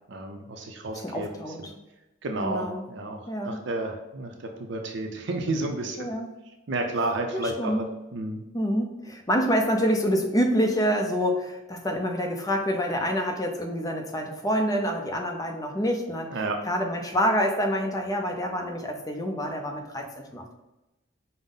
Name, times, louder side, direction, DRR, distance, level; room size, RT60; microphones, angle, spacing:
voice 1, 0.1-1.7 2.2-6.1 6.7-7.9 8.1-8.4 16.3-16.6, right 2 dB, 65° right, 3 dB, 0.5 m, -31 dB
voice 2, 1.0-1.6 2.4-2.9 3.3-3.6 6.0-6.3 7.3-7.8 8.5-16.3 16.7-20.5, equal, 20° left, 3 dB, 0.5 m, -27 dB
5.3 x 2.0 x 3.7 m, 0.97 s
head